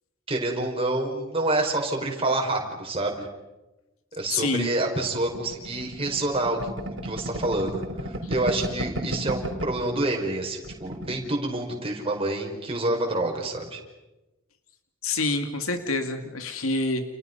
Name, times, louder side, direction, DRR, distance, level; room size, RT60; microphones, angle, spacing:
voice 1, 0.3-3.3 4.1-6.6 7.0-13.8, right 2 dB, 25° right, 1 dB, 5.4 m, -27 dB
voice 2, 4.3-4.7 15.0-17.0, left 3 dB, 90° left, 6 dB, 2.3 m, -27 dB
sound 1, 5.3-9.9 10.2-10.3 10.6-11.2, equal, 60° right, 3.8 m, -33 dB
30.0 x 30.0 x 5.5 m, 1.0 s
head